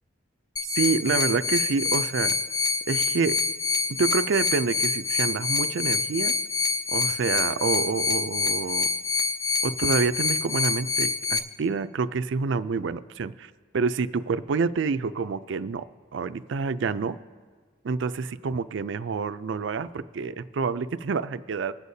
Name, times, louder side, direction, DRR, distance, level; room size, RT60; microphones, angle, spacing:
sound 1, 0.6-11.4, left 4 dB, 20° left, 0.4 m, -26 dB
voice 1, 0.6-2.3 2.9-3.4 3.9-6.3 6.9-8.9 9.6-17.2 17.8-21.7, right 5 dB, 75° right, 13 dB, 0.4 m, -27 dB
23.5 x 8.0 x 2.7 m, 1.5 s
head